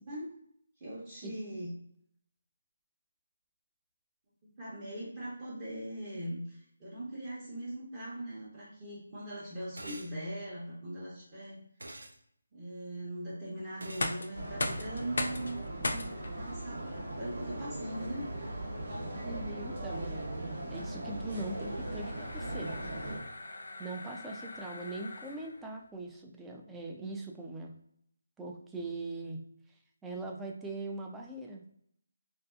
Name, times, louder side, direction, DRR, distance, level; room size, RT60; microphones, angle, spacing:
voice 1, 0.8-1.7 4.6-11.6 12.5-16.1 16.4-18.2, right 1 dB, 25° right, -8 dB, 0.8 m, -40 dB
sound 1, 9.8-10.1 11.8-12.2 13.8-14.2, right 1 dB, 80° right, 0.5 m, -45 dB
sound 2, 14.0-25.7, left 2 dB, 70° left, 0.4 m, -41 dB
sound 3, 14.3-23.2, right 1 dB, 55° right, 0.9 m, -39 dB
voice 2, 19.2-22.7 23.8-27.7 28.4-29.4 30.0-31.7, right 2 dB, 5° right, 0 dB, 0.3 m, -41 dB
2.6 x 2.3 x 2.3 m, 0.70 s
figure-of-eight pair, 160°, 0 cm